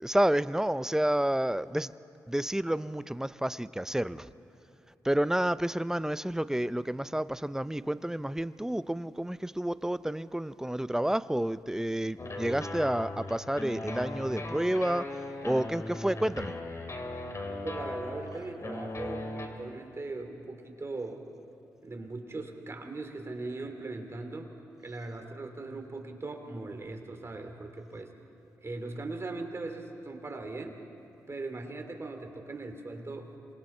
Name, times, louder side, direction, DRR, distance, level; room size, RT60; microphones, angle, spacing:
voice 1, 0.0-1.9 2.3-4.3 5.0-16.5, right 1 dB, 5° right, 16 dB, 0.5 m, -30 dB
sound 1, 12.2-19.5, left 2 dB, 40° left, 2.7 m, -38 dB
voice 2, 17.6-21.2 21.8-24.5 24.8-28.1 28.6-30.8 31.3-33.3, right 3 dB, 35° right, 4 dB, 2.9 m, -39 dB
27.5 x 22.0 x 4.4 m, 2.8 s
supercardioid pair, 50°, 7 cm